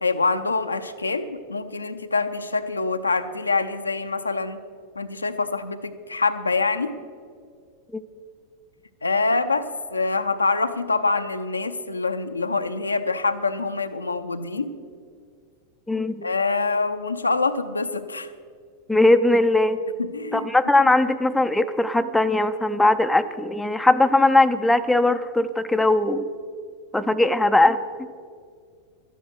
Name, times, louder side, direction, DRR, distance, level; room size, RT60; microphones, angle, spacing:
voice 1, 0.0-4.6 5.0-6.9 9.0-14.7 16.2-18.3 20.0-20.5, left 3 dB, 80° left, 8 dB, 0.6 m, -25 dB
voice 2, 15.9-16.3 18.9-19.8 20.3-26.2 26.9-27.8, left 2 dB, 5° left, 9 dB, 0.5 m, -19 dB
12.5 x 10.0 x 6.3 m, 2.1 s
figure-of-eight pair, 90°, 0 cm